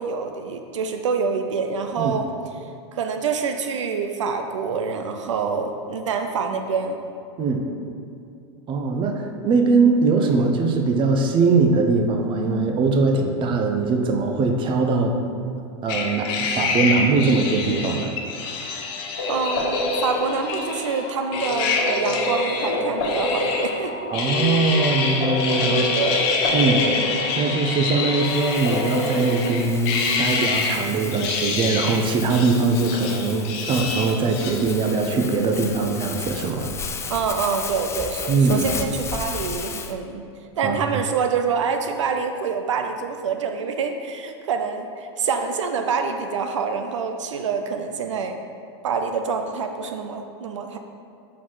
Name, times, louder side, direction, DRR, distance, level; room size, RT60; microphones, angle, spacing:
voice 1, 0.0-2.3 2.9-7.0 19.3-24.1 25.7-26.3 37.1-40.3 40.6-48.4 48.8-50.8, right 5 dB, 85° right, 5 dB, 0.5 m, -26 dB
voice 2, 8.7-15.2 15.8-18.1 24.1-25.9 26.5-26.9 27.4-36.7 38.3-38.7 40.6-40.8, right 4 dB, 35° right, 3 dB, 0.7 m, -21 dB
sound 1, 15.9-21.0 21.3-23.8 24.1-30.8 31.1-32.0 32.3-34.7, left 4 dB, 55° left, 0.9 m, -26 dB
sound 2, 19.2-29.5, left 1 dB, 75° left, 1.3 m, -28 dB
Crumpling crinkling, 28.2-39.9, left 5 dB, 20° left, 0.4 m, -35 dB
5.8 x 4.0 x 4.7 m, 2.5 s
hypercardioid pair, 110°, 15 cm